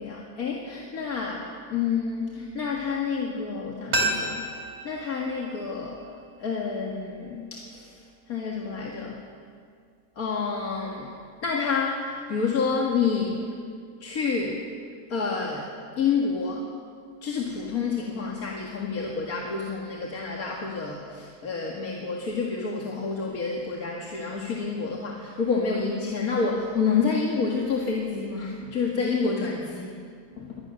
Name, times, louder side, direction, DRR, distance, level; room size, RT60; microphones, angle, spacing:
voice 1, 0.0-4.5 4.8-6.0 6.4-7.9 8.3-9.2 10.2-11.1 11.4-13.4 14.0-14.6 15.1-15.7 16.0-16.7 17.2-29.9 30.4-30.5, left 5 dB, 75° left, -1 dB, 2.4 m, -28 dB
sound 1, 3.9-6.7 7.0-7.1, right 1 dB, 45° right, 3.3 m, -31 dB
24.5 x 18.0 x 6.4 m, 2.2 s
omnidirectional pair, 1.5 m